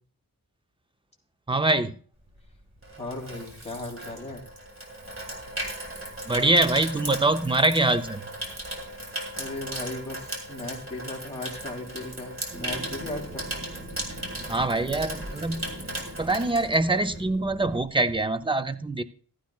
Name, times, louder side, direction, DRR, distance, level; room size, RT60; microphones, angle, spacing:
voice 1, 1.5-2.0 6.3-8.3 14.5-15.7 16.2-19.0, right 2 dB, 15° right, 10 dB, 0.5 m, -24 dB
Water tap faucet / Sink (filling or washing), 2.3-17.3 17.6-17.9, right 1 dB, 40° right, 2.7 m, -37 dB
voice 2, 3.0-4.4 9.4-13.5, left 2 dB, 20° left, -1 dB, 3.0 m, -37 dB
sound 1, 12.5-17.9, right 1 dB, 55° right, 3.3 m, -41 dB
15.0 x 12.0 x 2.3 m, 0.40 s
wide cardioid pair, 100°, 35 cm